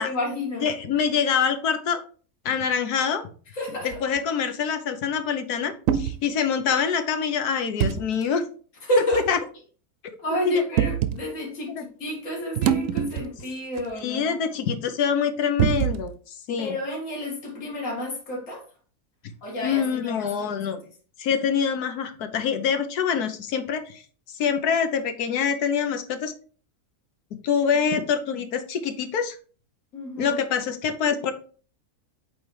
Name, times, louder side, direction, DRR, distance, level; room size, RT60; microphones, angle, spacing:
voice 1, 0.0-0.7 3.5-4.0 8.9-9.2 10.2-14.4 16.6-18.6 19.4-20.7 29.9-30.4, left 1 dB, 55° left, -2 dB, 2.6 m, -30 dB
voice 2, 0.6-2.0 2.4-3.2 3.8-8.4 9.3-9.4 10.4-10.6 11.7-11.8 14.0-16.8 19.6-20.8 21.2-24.0 24.3-26.3 27.4-29.4 30.2-31.3, left 7 dB, 80° left, 8 dB, 1.5 m, -25 dB
sound 1, 3.9-4.2 5.9-6.2 7.8-8.0 9.1-9.3 10.8-11.2 12.6-13.4 13.8-13.9 15.6-16.1, right 9 dB, 65° right, 1.0 m, -24 dB
8.6 x 3.4 x 4.8 m, 0.41 s
omnidirectional pair, 1.6 m